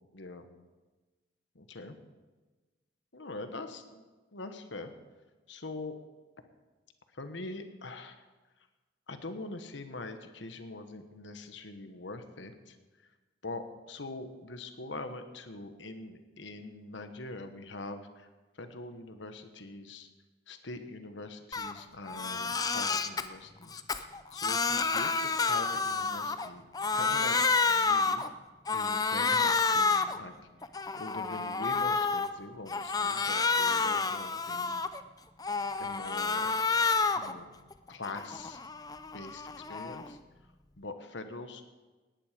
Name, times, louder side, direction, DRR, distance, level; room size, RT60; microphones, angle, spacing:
voice 1, 0.1-0.4 1.5-2.0 3.1-4.0 4.3-4.9 5.5-6.0 7.1-8.2 9.1-12.8 13.4-18.3 18.6-20.1 20.5-26.7 26.9-27.4 27.7-28.2 28.7-30.3 30.6-30.7 31.0-34.8 35.8-36.5 37.1-37.6 37.9-38.6 39.1-40.2 40.8-41.7, left 2 dB, 75° left, 8 dB, 1.3 m, -43 dB
Crying sobbing, 21.5-21.7 22.1-23.2 23.7-26.5 26.7-28.3 28.7-30.2 30.6-32.3 32.7-35.0 35.4-37.3 37.7-40.1, left 4 dB, 20° left, 0.5 m, -29 dB
17.5 x 10.5 x 5.1 m, 1.2 s
head